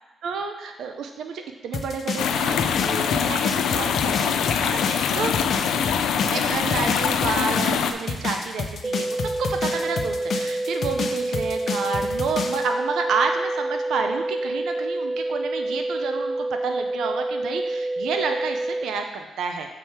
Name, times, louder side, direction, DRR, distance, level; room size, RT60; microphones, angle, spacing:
voice 1, 0.2-5.4 6.2-19.7, right 5 dB, 85° right, 5 dB, 0.6 m, -30 dB
sound 1, 1.7-12.6, left 5 dB, 60° left, 0.7 m, -30 dB
sound 2, 2.2-7.9, left 7 dB, 90° left, 0.4 m, -23 dB
sound 3, 8.8-18.8, right 2 dB, 10° right, 0.6 m, -28 dB
7.0 x 4.8 x 4.6 m, 1.1 s
cardioid pair, 85°, 0 cm